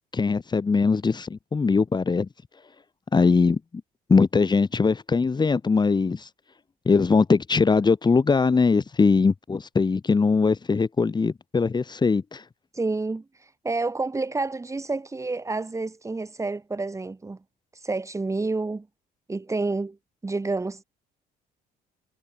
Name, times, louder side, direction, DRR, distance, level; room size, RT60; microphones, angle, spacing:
voice 1, 0.1-2.3 3.1-3.6 4.1-6.3 6.9-12.4, left 4 dB, 25° left, 6.4 m, -21 dB
voice 2, 12.7-17.4 17.7-18.9 19.3-20.0 20.2-20.8, right 3 dB, 15° right, 7.1 m, -29 dB
cardioid pair, 110°, 17 cm